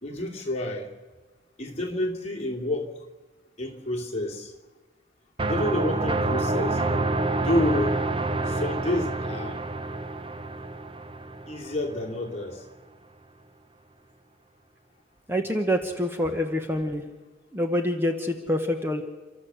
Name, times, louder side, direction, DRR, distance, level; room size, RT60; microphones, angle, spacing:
voice 1, 0.0-0.9 1.6-2.9 3.6-4.5 5.4-6.8 7.3-8.0 8.5-9.6 11.5-12.6, left 1 dB, 35° left, -1 dB, 2.9 m, -29 dB
sound 1, 5.4-12.1, right 2 dB, 30° right, 0.8 m, -28 dB
voice 2, 15.3-17.0 17.5-19.0, equal, 10° right, 5 dB, 1.3 m, -26 dB
29.0 x 13.0 x 8.0 m, 1.3 s
head